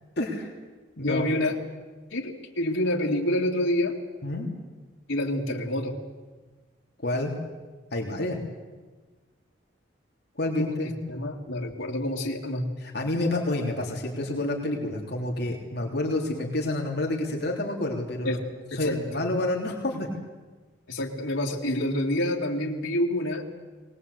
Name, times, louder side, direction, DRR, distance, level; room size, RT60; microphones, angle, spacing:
voice 1, 0.2-0.5 1.0-1.3 4.2-4.5 7.0-7.3 7.9-8.4 10.4-11.0 12.8-18.4 18.8-20.1, left 2 dB, 55° left, 0 dB, 3.3 m, -28 dB
voice 2, 1.0-1.6 2.1-4.0 5.1-6.0 10.6-10.7 11.1-12.6 18.2-18.4 18.7-19.2 20.9-23.4, left 1 dB, 85° left, -1 dB, 2.8 m, -27 dB
22.5 x 19.5 x 8.3 m, 1.3 s
head